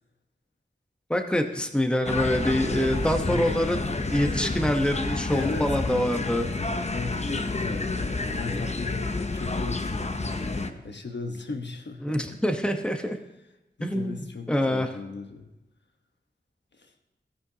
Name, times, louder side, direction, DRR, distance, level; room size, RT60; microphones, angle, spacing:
voice 1, 1.1-6.4 12.0-13.2 13.8-14.2 14.5-14.9, equal, 5° left, 5 dB, 1.0 m, -25 dB
sound 1, 2.0-10.7, left 3 dB, 40° left, 0.8 m, -29 dB
voice 2, 2.6-3.5 5.3-12.4 13.8-15.5 16.7-16.9, left 3 dB, 75° left, 4 dB, 1.2 m, -37 dB
16.5 x 9.7 x 2.8 m, 1.0 s
wide cardioid pair, 70°, 18 cm